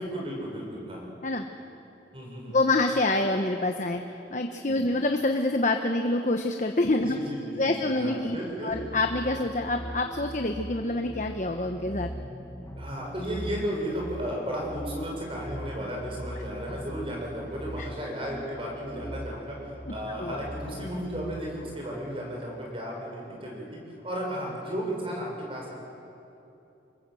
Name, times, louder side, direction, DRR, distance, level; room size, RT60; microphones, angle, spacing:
voice 1, 0.0-1.1 2.1-2.6 4.7-4.9 7.1-8.7 12.8-23.7 24.0-25.7, equal, 30° right, -2 dB, 6.8 m, -34 dB
voice 2, 2.5-4.0 4.3-7.2 7.6-8.4 8.6-12.1 17.8-17.9 20.2-20.3, left 2 dB, 45° left, 5 dB, 1.1 m, -26 dB
sound 1, 8.7-21.4, equal, 15° left, 2.1 m, -41 dB
27.5 x 21.0 x 7.9 m, 2.9 s
head